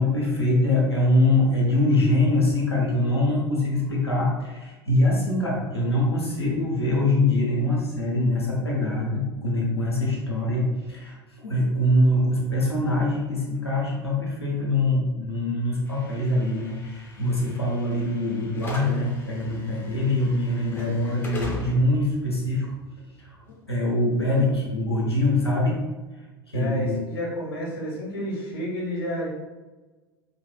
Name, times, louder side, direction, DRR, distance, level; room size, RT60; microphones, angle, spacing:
voice 1, 0.0-22.7 23.2-23.4 23.7-25.8 26.5-26.9, left 1 dB, 90° left, -4 dB, 0.9 m, -23 dB
Slam / Alarm, 15.9-23.9, left 3 dB, 15° left, 0.9 m, -41 dB
voice 2, 26.5-29.3, equal, 70° left, -3 dB, 1.2 m, -30 dB
5.1 x 2.4 x 2.3 m, 1.2 s
figure-of-eight pair, 75°, 13 cm